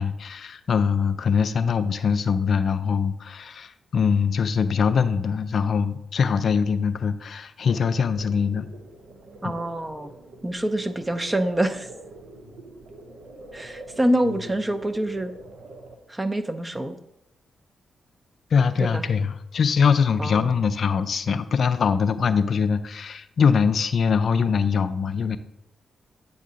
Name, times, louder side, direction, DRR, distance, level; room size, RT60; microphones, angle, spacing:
voice 1, 0.0-8.7 18.5-25.4, left 6 dB, 65° left, 11 dB, 0.3 m, -22 dB
sound 1, 7.7-16.0, right 1 dB, 70° right, 0.9 m, -44 dB
voice 2, 9.4-10.1 10.4-11.9 13.5-15.3 16.1-17.0 18.8-19.0 20.2-20.5, right 1 dB, 20° right, 9 dB, 0.6 m, -26 dB
8.2 x 2.8 x 5.1 m, 0.84 s
cardioid pair, 65°, 0 cm